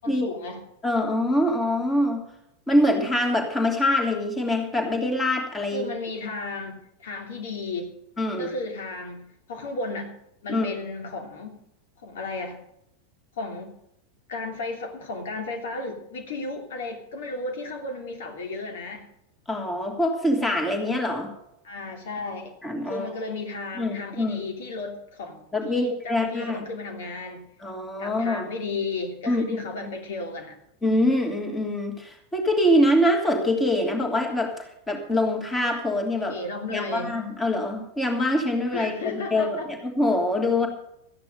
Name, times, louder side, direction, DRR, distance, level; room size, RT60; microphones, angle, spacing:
voice 1, 0.0-0.6 5.7-7.9 8.4-10.2 10.4-11.6 12.0-12.6 13.4-13.8 14.3-19.1 21.6-22.5 22.8-27.5 28.0-30.6 36.3-37.2 38.7-39.7, left 3 dB, 55° left, 4 dB, 3.2 m, -34 dB
voice 2, 0.8-2.2 2.7-5.9 8.2-8.5 10.5-10.8 19.5-21.3 22.6-23.1 23.7-24.4 25.5-26.6 27.6-28.5 29.3-29.9 30.8-36.4 36.7-40.7, left 1 dB, 10° left, 3 dB, 3.1 m, -24 dB
14.5 x 10.0 x 6.6 m, 0.78 s
figure-of-eight pair, 90°, 0 cm